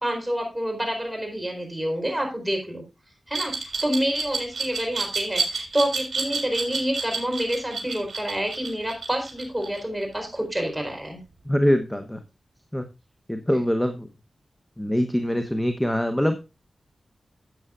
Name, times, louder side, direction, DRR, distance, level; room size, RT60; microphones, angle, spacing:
voice 1, 0.0-2.8 3.3-11.2 13.5-13.6, equal, 10° right, 2 dB, 4.3 m, -28 dB
Glass, 3.3-10.2, right 4 dB, 65° right, 3.7 m, -29 dB
voice 2, 11.5-12.2 12.7-12.8 13.3-14.1 14.8-16.4, equal, 5° left, 7 dB, 1.0 m, -23 dB
12.5 x 7.9 x 2.5 m, 0.26 s
wide cardioid pair, 70°, 0 cm